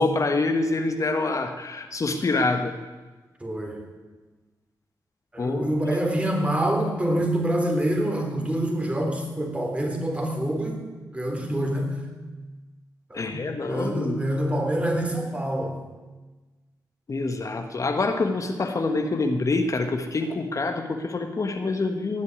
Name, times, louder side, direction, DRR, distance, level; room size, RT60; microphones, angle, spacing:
voice 1, 0.0-2.7 5.4-5.7 13.1-14.2 17.1-22.2, left 3 dB, 45° left, 5 dB, 1.4 m, -26 dB
voice 2, 3.4-3.8 5.3-10.8 11.1-12.1 13.1-15.8, right 1 dB, 15° right, 2 dB, 3.6 m, -26 dB
18.0 x 6.7 x 9.6 m, 1.2 s
cardioid pair, 70°, 7 cm